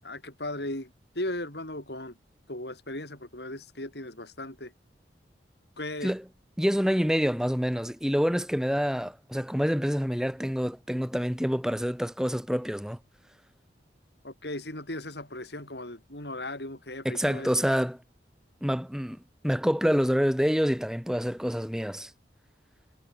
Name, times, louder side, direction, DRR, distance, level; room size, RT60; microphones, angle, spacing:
voice 1, 0.0-2.2 2.5-4.7 5.8-6.2 14.2-17.8, left 1 dB, 65° left, 7.4 m, -37 dB
voice 2, 6.6-13.0 17.0-18.0 18.6-19.2 19.4-22.1, equal, 5° right, 2.8 m, -27 dB
head